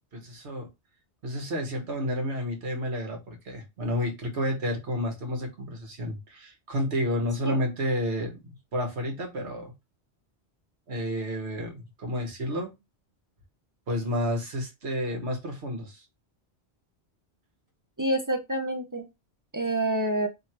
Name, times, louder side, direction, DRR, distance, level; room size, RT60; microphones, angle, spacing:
voice 1, 0.1-0.7 1.2-9.7 10.9-12.7 13.9-16.0, equal, 75° right, 3 dB, 1.5 m, -30 dB
voice 2, 18.0-19.1 19.5-20.3, right 1 dB, 25° right, 5 dB, 0.4 m, -27 dB
3.1 x 3.1 x 4.3 m, 0.22 s
omnidirectional pair, 1.1 m